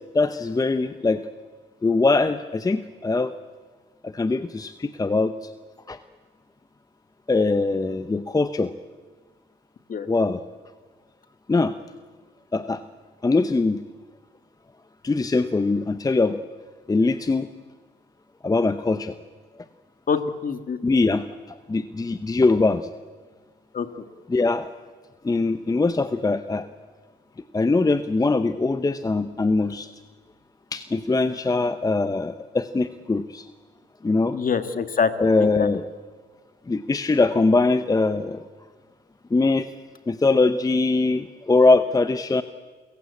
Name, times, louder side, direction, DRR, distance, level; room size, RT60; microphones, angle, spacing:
voice 1, 0.1-1.2 1.8-3.3 4.0-5.5 5.9-6.0 7.3-8.7 10.1-10.4 11.5-11.7 12.5-12.8 13.2-13.8 15.0-16.4 16.9-17.5 18.4-19.1 20.8-22.9 24.3-24.7 25.2-26.7 27.5-29.9 30.7-33.5 34.0-34.4 35.2-35.8 36.7-38.4 39.3-39.7 40.1-42.4, left 3 dB, 20° left, 11 dB, 0.8 m, -22 dB
voice 2, 20.1-20.8 23.7-23.9 34.3-35.1 35.4-35.7, left 6 dB, 45° left, 10 dB, 1.7 m, -25 dB
29.0 x 15.5 x 8.4 m, 1.5 s
cardioid pair, 90°, 20 cm